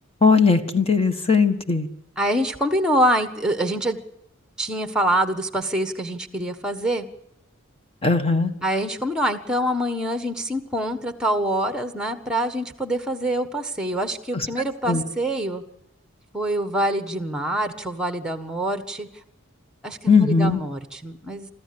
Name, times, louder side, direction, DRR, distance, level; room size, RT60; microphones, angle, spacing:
voice 1, 0.2-1.9 8.0-8.5 14.3-14.5 14.9-15.0 20.1-20.6, left 4 dB, 30° left, 7 dB, 1.5 m, -18 dB
voice 2, 2.2-4.0 4.6-7.1 8.6-15.6 16.3-19.1 19.8-21.5, right 1 dB, 5° right, 8 dB, 1.4 m, -25 dB
25.0 x 14.0 x 8.7 m, 0.83 s
head